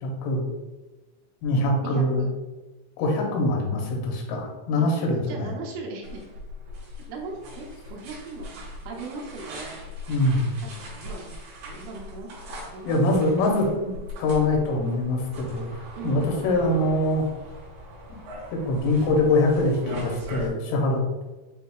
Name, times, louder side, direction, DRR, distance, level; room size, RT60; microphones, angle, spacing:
voice 1, 0.0-0.4 1.4-2.3 3.0-5.5 10.1-10.5 12.8-17.3 18.5-21.0, left 2 dB, 85° left, 0 dB, 3.3 m, -24 dB
voice 2, 1.8-2.3 4.8-4.9 5.3-6.2 7.1-9.7 10.6-11.3 11.6-13.2 16.0-16.5, right 4 dB, 80° right, -1 dB, 3.2 m, -38 dB
sound 1, 6.0-20.5, left 1 dB, 65° right, 3.1 m, -40 dB
8.2 x 2.7 x 2.3 m, 1.1 s
omnidirectional pair, 5.6 m